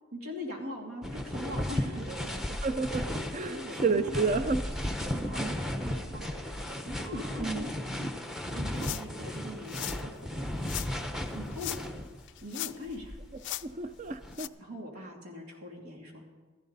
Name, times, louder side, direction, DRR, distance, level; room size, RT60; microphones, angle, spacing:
voice 1, 0.1-2.4 3.5-4.5 5.0-6.3 6.8-8.0 8.5-10.5 11.3-11.8 12.4-13.2 14.5-16.3, left 1 dB, 75° right, 0 dB, 2.7 m, -41 dB
sound 1, 1.0-12.3 12.9-14.3, left 1 dB, ahead, 0.8 m, -35 dB
sound 2, 1.4-4.1 4.4-4.9 5.1-5.3 5.6-7.7 8.7-8.9 9.2-9.7 9.9-10.1 10.4-10.9, right 1 dB, 50° right, 2.3 m, -49 dB
voice 2, 2.6-3.1 3.3-4.6 5.4-5.6 7.4-7.6 13.6-14.5, right 4 dB, 35° right, 12 dB, 0.5 m, -30 dB
sound 3, 8.8-9.2 9.7-10.0 10.6-10.9 11.5-12.0 12.3-12.9 13.4-13.6 14.3-14.5, left 16 dB, 50° left, 0.3 m, -38 dB
15.0 x 14.5 x 4.1 m, 1.4 s
head